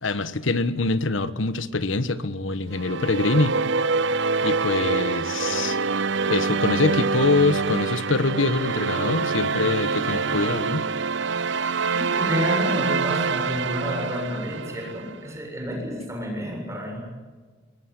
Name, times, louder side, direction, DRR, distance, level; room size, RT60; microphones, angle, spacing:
voice 1, 0.0-3.6 4.4-5.8 6.3-10.8, left 3 dB, 85° left, 1.3 m, -24 dB
sound 1, 2.7-15.1, right 4 dB, 65° right, 0.7 m, -25 dB
voice 2, 11.5-17.2, left 1 dB, 15° right, 7.5 m, -30 dB
22.0 x 20.5 x 9.8 m
head